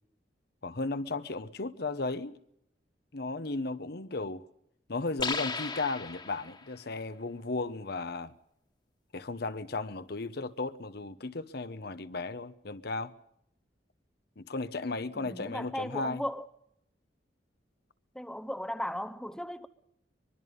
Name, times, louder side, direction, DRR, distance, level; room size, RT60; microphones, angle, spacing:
voice 1, 0.6-2.4 3.1-4.4 4.9-8.4 9.1-13.1 14.4-16.2, left 3 dB, 60° left, 1.1 m, -35 dB
sound 1, 5.2-6.8, left 4 dB, 25° left, 1.7 m, -35 dB
voice 2, 15.1-16.5 18.1-19.7, equal, 5° left, 0.9 m, -36 dB
24.0 x 23.0 x 5.3 m
head